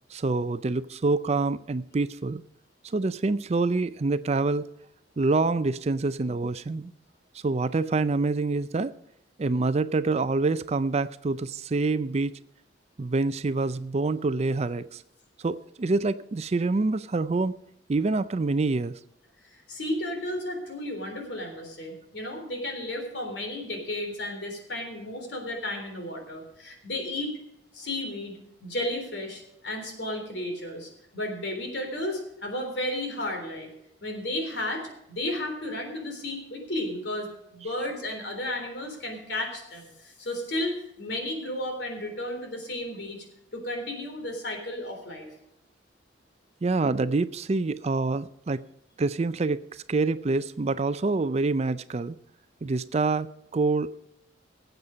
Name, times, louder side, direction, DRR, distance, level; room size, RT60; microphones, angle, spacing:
voice 1, 0.1-2.4 2.8-4.7 5.2-6.9 7.3-8.9 9.4-12.3 13.0-15.0 15.4-17.5 17.9-18.9 46.6-48.6 49.0-52.2 52.6-54.0, right 3 dB, 35° right, 14 dB, 0.4 m, -26 dB
voice 2, 19.5-27.3 27.7-33.7 34.0-40.7 41.0-43.2 43.5-45.3, left 1 dB, 65° left, 3 dB, 3.7 m, -33 dB
18.0 x 8.1 x 5.1 m, 0.80 s
head